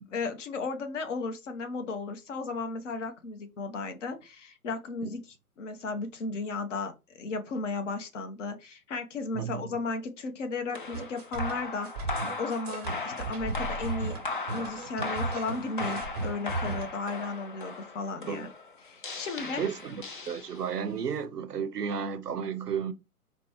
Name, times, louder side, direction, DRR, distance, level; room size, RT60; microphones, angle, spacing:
voice 1, 0.1-12.1 12.4-14.2 14.5-18.5 18.8-19.7, left 3 dB, 50° left, 0.9 m, -35 dB
voice 2, 9.3-9.7 18.3-18.5 19.2-22.9, right 7 dB, 90° right, 0.6 m, -33 dB
sound 1, 10.7-20.9, left 3 dB, 35° left, 0.4 m, -38 dB
sound 2, 10.9-16.9, right 3 dB, 25° right, 0.6 m, -35 dB
5.1 x 2.2 x 2.9 m
figure-of-eight pair, 125°, 46 cm